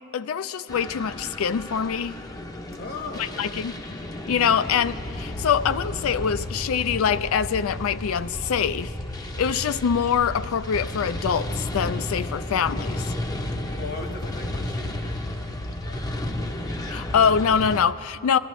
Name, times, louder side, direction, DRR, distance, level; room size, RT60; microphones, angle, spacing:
voice 1, 0.1-2.2 3.4-3.8 4.3-8.9 9.4-13.1 16.9-18.4, left 7 dB, 75° left, 0.4 m, -24 dB
sound 1, 0.7-17.8, left 1 dB, 20° left, 0.6 m, -33 dB
voice 2, 2.8-3.5 13.8-16.5, left 3 dB, 45° left, 1.1 m, -39 dB
22.0 x 12.5 x 3.1 m
head